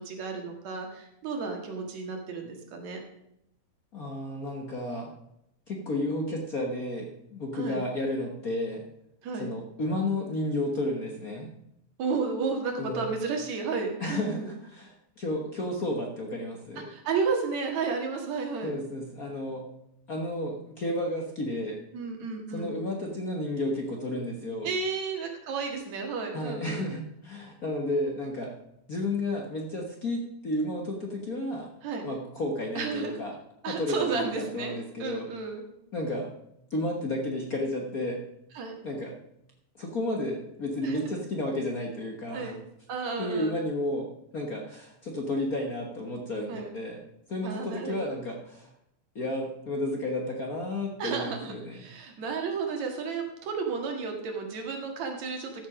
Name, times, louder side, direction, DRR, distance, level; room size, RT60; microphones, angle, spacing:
voice 1, 0.0-3.0 7.6-7.8 9.2-9.5 12.0-14.5 16.9-18.7 21.9-22.7 24.6-26.9 31.8-32.1 32.8-33.1 33.6-35.6 38.5-38.8 40.8-41.2 42.3-42.6 42.9-43.6 46.5-46.7 47.4-48.1 51.0-55.7, right 5 dB, 70° right, 3 dB, 3.1 m, -32 dB
voice 2, 3.9-5.1 5.7-8.8 9.3-11.5 12.8-13.1 14.0-16.9 18.6-19.7 20.1-21.8 22.5-24.7 26.3-28.5 28.9-31.7 32.0-33.4 33.7-35.3 35.9-36.3 36.7-38.2 38.8-39.1 39.8-42.5 43.2-48.7 49.1-51.8, left 1 dB, 45° left, 1 dB, 1.2 m, -32 dB
14.0 x 7.2 x 5.0 m, 0.79 s
omnidirectional pair, 3.3 m